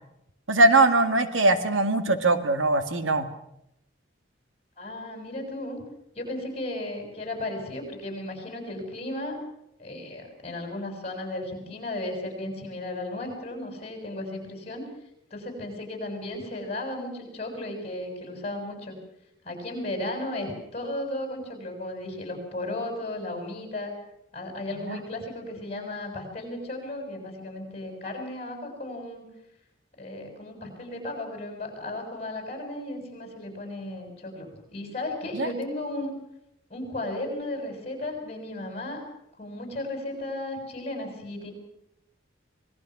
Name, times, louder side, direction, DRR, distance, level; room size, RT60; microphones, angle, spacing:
voice 1, 0.5-3.3 24.9-25.0 35.4-35.5, right 2 dB, 90° right, 9 dB, 2.0 m, -21 dB
voice 2, 4.8-5.8 6.1-9.4 9.8-14.9 15.3-19.0 19.4-23.9 24.3-29.2 30.0-36.1 36.7-39.0 39.4-41.5, left 1 dB, 35° left, 4 dB, 6.7 m, -35 dB
26.5 x 20.0 x 6.1 m, 0.79 s
head